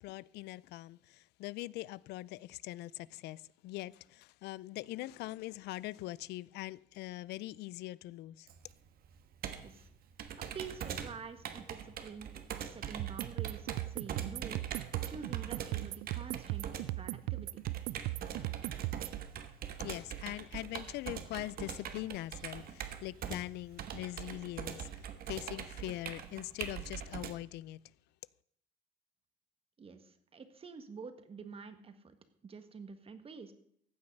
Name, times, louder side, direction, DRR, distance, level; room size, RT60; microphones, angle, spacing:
voice 1, 0.0-8.5 19.8-27.8, left 17 dB, 80° left, 0.4 m, -42 dB
Computer keyboard, 8.5-27.3, right 9 dB, 60° right, 1.4 m, -43 dB
voice 2, 10.5-14.6 15.1-17.6 29.8-32.2 32.4-33.5, right 5 dB, 35° right, 1.5 m, -48 dB
sound 1, 13.0-19.2, right 18 dB, 85° right, 0.4 m, -38 dB
15.0 x 8.7 x 5.4 m
cardioid pair, 110°, 17 cm